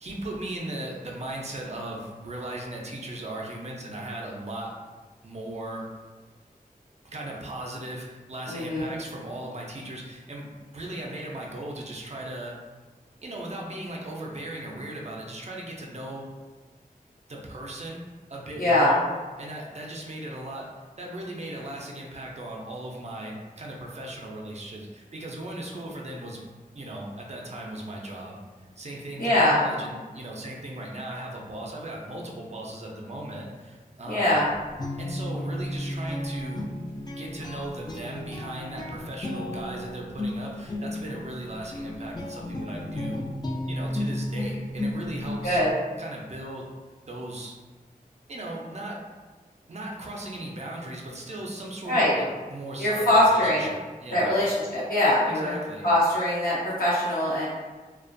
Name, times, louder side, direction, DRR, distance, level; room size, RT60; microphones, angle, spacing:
voice 1, 0.0-4.7 5.2-5.9 7.0-12.6 13.2-16.3 17.3-18.0 18.3-19.0 19.4-20.7 21.0-26.5 26.7-28.4 28.8-34.5 35.0-36.6 37.1-43.2 43.7-45.6 46.0-46.7 47.1-47.5 48.3-49.0 49.7-54.4 55.3-55.9, right 1 dB, 45° right, -2 dB, 0.4 m, -37 dB
voice 2, 8.5-8.9 18.6-18.9 29.2-29.6 34.1-34.4 45.4-45.7 51.9-52.1 52.8-53.7 54.1-55.6 55.8-57.5, left 1 dB, 75° left, -9 dB, 0.8 m, -22 dB
Guitar, 34.4-45.7, left 1 dB, 30° left, 0.4 m, -33 dB
2.4 x 2.2 x 2.5 m, 1.3 s
wide cardioid pair, 75°, 15 cm